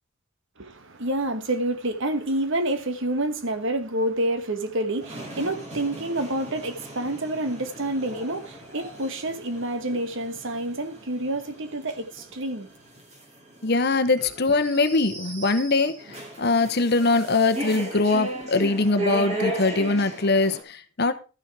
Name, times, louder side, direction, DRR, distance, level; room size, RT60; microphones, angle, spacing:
voice 1, 0.6-12.7, right 1 dB, 55° right, 1.2 m, -28 dB
sound 1, 5.0-20.6, right 1 dB, 30° right, 2.6 m, -36 dB
voice 2, 13.6-15.9 16.4-21.1, left 3 dB, 45° left, 0.9 m, -22 dB
13.0 x 6.3 x 4.7 m
head